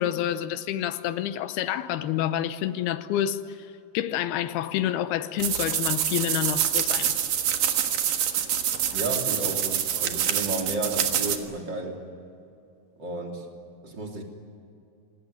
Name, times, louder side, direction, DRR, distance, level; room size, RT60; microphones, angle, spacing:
voice 1, 0.0-3.7 3.9-7.1, left 11 dB, 85° left, 2.8 m, -28 dB
sound 1, 5.4-11.4, right 9 dB, 65° right, 3.0 m, -26 dB
voice 2, 8.9-12.0 13.0-13.4 13.8-14.2, right 2 dB, 30° right, 3.6 m, -32 dB
26.0 x 19.5 x 9.7 m
omnidirectional pair, 4.5 m